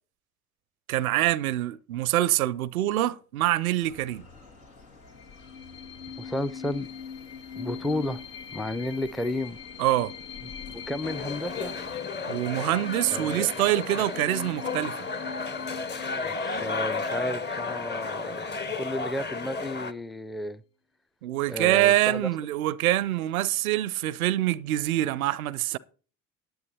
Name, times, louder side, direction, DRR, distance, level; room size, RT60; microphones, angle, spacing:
voice 1, 0.9-4.3 9.8-10.1 12.3-15.0 21.2-25.8, right 14 dB, 80° right, 0.5 m, -25 dB
sound 1, 3.8-12.0, left 4 dB, 85° left, 1.8 m, -49 dB
sound 2, 5.1-18.5, left 7 dB, 60° left, 1.4 m, -42 dB
voice 2, 6.2-6.9 7.6-8.2 8.5-9.6 10.7-11.7 13.1-13.5 16.2-18.4 18.7-20.6 21.5-22.3, left 1 dB, ahead, 0.4 m, -32 dB
sound 3, 11.0-19.9, left 4 dB, 25° left, 0.9 m, -33 dB
10.5 x 9.5 x 4.2 m
figure-of-eight pair, 50°, 42 cm